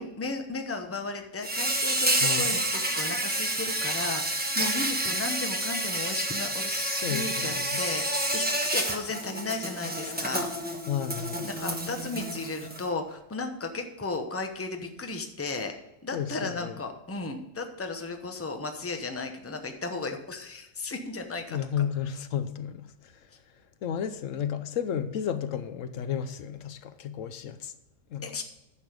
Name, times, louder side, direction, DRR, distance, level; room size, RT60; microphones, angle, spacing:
voice 1, 0.0-10.5 11.4-15.7 16.0-21.6 28.2-28.4, left 3 dB, 15° left, 0.8 m, -35 dB
Insect, 1.4-12.8, right 1 dB, 10° right, 1.0 m, -29 dB
voice 2, 2.2-2.6 6.9-7.8 10.9-11.5 16.1-16.8 21.5-23.1 23.8-27.7 28.1-28.3, left 8 dB, 75° left, 1.0 m, -32 dB
10.0 x 6.5 x 5.0 m
omnidirectional pair, 1.4 m